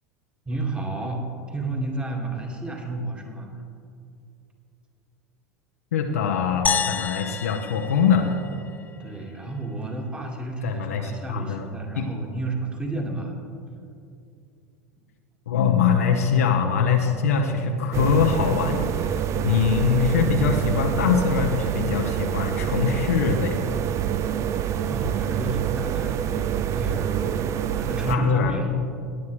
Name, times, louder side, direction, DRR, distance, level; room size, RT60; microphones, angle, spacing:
voice 1, 0.5-3.6 9.0-13.3 24.9-26.4 26.7-28.7, right 2 dB, 15° right, 1 dB, 1.9 m, -31 dB
voice 2, 5.9-8.3 10.6-11.7 12.0-12.1 15.5-23.7 28.1-28.5, left 6 dB, 75° left, 2 dB, 0.8 m, -23 dB
sound 1, 6.7-9.1, left 7 dB, 20° left, 0.3 m, -29 dB
sound 2, 17.9-28.2, right 9 dB, 40° right, 0.5 m, -26 dB
17.5 x 9.5 x 3.2 m, 2.5 s
hypercardioid pair, 80°, 8 cm